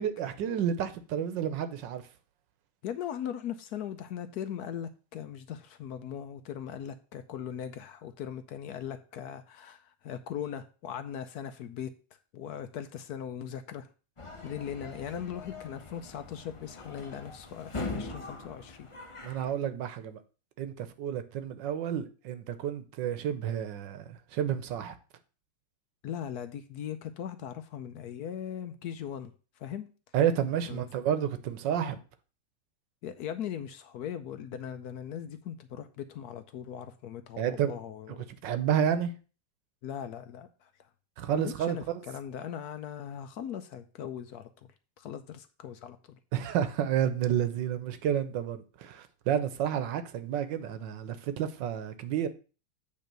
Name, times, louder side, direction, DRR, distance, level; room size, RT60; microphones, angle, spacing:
voice 1, 0.0-2.0 19.2-20.2 20.6-24.9 30.1-32.0 37.4-37.8 38.4-39.1 41.2-41.8 46.3-52.3, right 9 dB, 80° right, 1.4 m, -30 dB
voice 2, 2.8-11.9 12.3-13.9 14.4-18.9 26.0-29.3 29.6-29.9 30.7-30.9 33.0-38.3 39.8-40.7 41.2-44.5 45.0-46.2, left 9 dB, 70° left, 1.0 m, -39 dB
sound 1, 14.2-19.5, left 3 dB, 50° left, 0.3 m, -42 dB
8.5 x 3.3 x 6.6 m
omnidirectional pair, 2.0 m